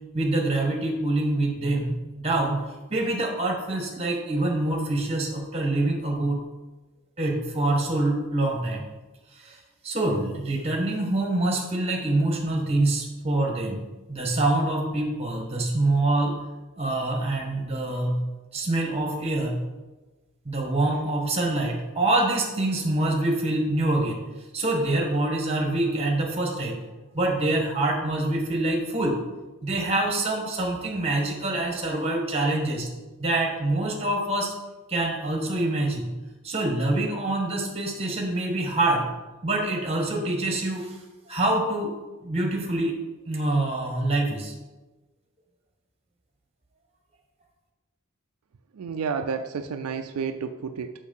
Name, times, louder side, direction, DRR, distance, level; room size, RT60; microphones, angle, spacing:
voice 1, 0.1-2.6 2.9-6.4 7.2-8.8 9.3-9.6 9.8-13.8 14.1-16.3 16.8-18.2 18.5-19.6 20.4-24.2 24.5-26.8 27.1-29.2 29.6-32.9 33.2-34.5 34.9-36.2 36.4-39.1 39.4-41.0 41.3-41.9 42.2-42.9 43.3-44.5, right 2 dB, 25° right, 1 dB, 1.4 m, -25 dB
voice 2, 48.7-50.9, right 6 dB, 85° right, 8 dB, 0.4 m, -30 dB
6.4 x 5.6 x 5.3 m, 1.2 s
head